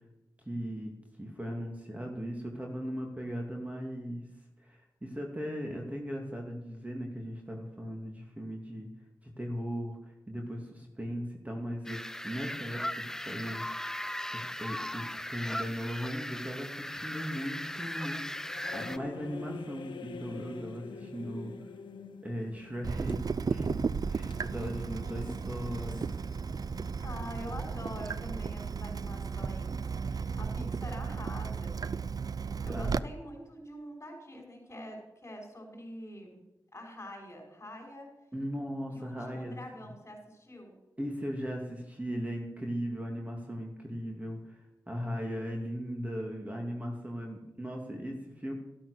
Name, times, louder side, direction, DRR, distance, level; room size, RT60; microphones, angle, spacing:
voice 1, 0.4-0.9 1.2-4.2 4.6-8.9 9.2-10.0 10.3-13.6 14.3-18.4 18.7-21.5 22.2-23.2 23.5-23.8 24.1-26.1 32.7-33.0 38.3-39.6 41.0-44.6 44.9-48.5, equal, 20° right, 1 dB, 2.7 m, -38 dB
sound 1, 11.8-19.0, left 1 dB, 5° left, 0.6 m, -38 dB
sound 2, 18.3-26.4, left 5 dB, 85° left, 0.9 m, -47 dB
Water tap faucet / Drip, 22.8-33.0, right 5 dB, 50° right, 0.5 m, -34 dB
voice 2, 27.0-29.8 30.1-31.7 32.7-36.5 36.7-38.1 38.9-40.8, equal, 35° left, 1 dB, 5.9 m, -45 dB
12.5 x 12.0 x 6.6 m, 0.93 s
cardioid pair, 45°, 8 cm